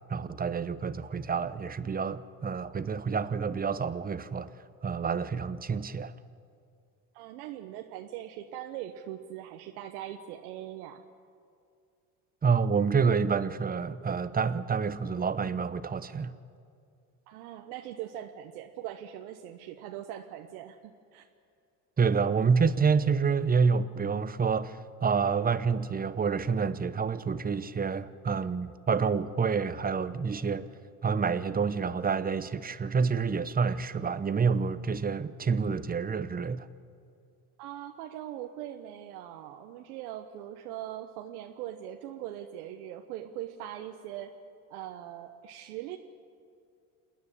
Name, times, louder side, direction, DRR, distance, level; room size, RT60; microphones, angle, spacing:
voice 1, 0.1-4.5 4.8-6.1 12.4-16.4 22.0-30.7 31.0-36.7, right 5 dB, 20° right, 14 dB, 0.8 m, -28 dB
voice 2, 7.1-11.0 17.3-21.2 37.6-44.4 44.7-46.0, right 12 dB, 75° right, 4 dB, 1.1 m, -41 dB
27.5 x 9.5 x 9.9 m, 2.4 s
hypercardioid pair, 75°, 44 cm